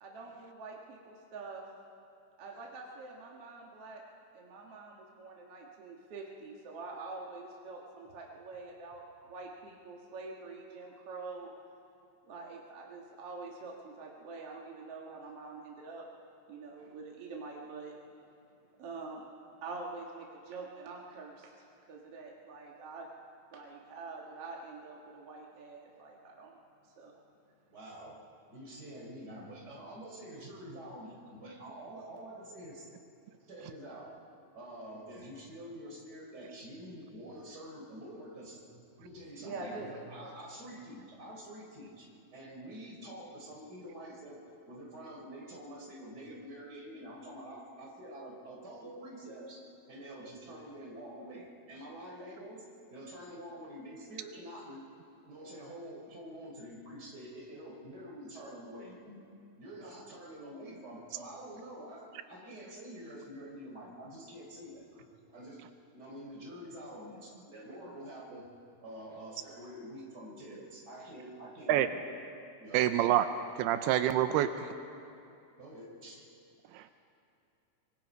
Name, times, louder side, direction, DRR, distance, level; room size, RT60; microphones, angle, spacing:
voice 1, 0.0-1.6 2.4-4.0 4.3-11.5 12.3-16.1 16.5-17.9 18.8-19.3 19.6-21.5 21.9-23.1 23.5-26.5 27.0-27.1 39.4-40.3, right 3 dB, 50° right, -1 dB, 1.9 m, -45 dB
voice 2, 27.7-28.2 28.5-32.9 33.5-34.2 34.5-38.6 39.0-54.9 55.2-59.2 59.6-65.0 65.3-65.6 65.9-68.5 68.8-72.0 72.6-72.9 75.6-76.2, right 1 dB, 25° right, -2 dB, 4.1 m, -47 dB
voice 3, 72.7-73.3 73.6-74.5 76.7-76.9, right 12 dB, 85° right, 9 dB, 2.7 m, -26 dB
25.0 x 22.5 x 5.2 m, 2.6 s
omnidirectional pair, 4.5 m